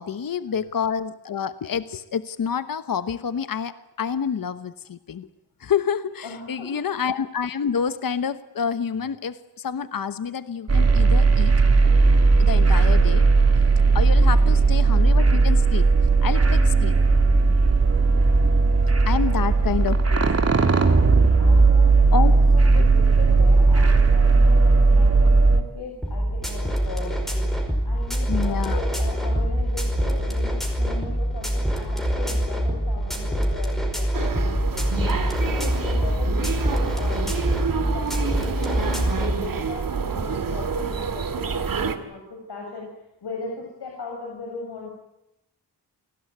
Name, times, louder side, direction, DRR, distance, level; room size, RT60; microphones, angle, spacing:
voice 1, 0.0-5.3 5.6-11.5 12.4-13.3 13.9-15.9 16.2-17.0 19.1-20.6 22.1-22.3 28.3-28.8, left 7 dB, 55° left, 12 dB, 1.1 m, -28 dB
voice 2, 6.2-6.9 14.3-14.6 19.1-19.6 21.4-34.9 35.4-37.3 37.7-42.9 43.2-44.9, left 3 dB, 80° left, 0 dB, 6.9 m, -38 dB
sound 1, 10.7-25.6, right 3 dB, 40° right, 3.0 m, -17 dB
sound 2, 26.0-39.3, equal, ahead, 5.1 m, -25 dB
sound 3, 34.1-42.0, right 6 dB, 55° right, 2.3 m, -28 dB
29.5 x 19.5 x 9.4 m, 0.89 s
wide cardioid pair, 165°, 40 cm